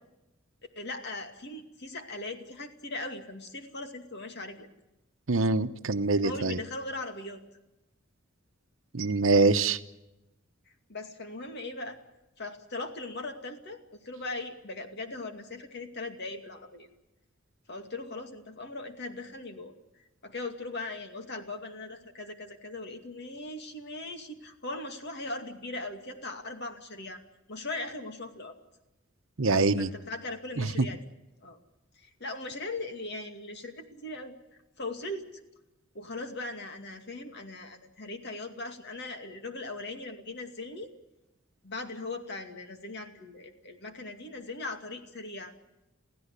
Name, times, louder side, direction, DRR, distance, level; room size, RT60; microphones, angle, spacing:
voice 1, 0.8-4.7 6.2-7.4 10.9-12.0 12.4-13.8 14.0-16.9 17.7-19.7 20.2-27.2 27.5-28.5 29.8-31.0 31.4-31.6 32.0-34.3 34.8-35.3 35.9-40.9 41.6-45.5, left 2 dB, 55° left, 6 dB, 2.4 m, -39 dB
voice 2, 5.3-6.6 8.9-9.8 29.4-29.9 30.6-30.9, right 3 dB, 70° right, 10 dB, 1.0 m, -24 dB
28.5 x 15.5 x 8.3 m, 0.96 s
head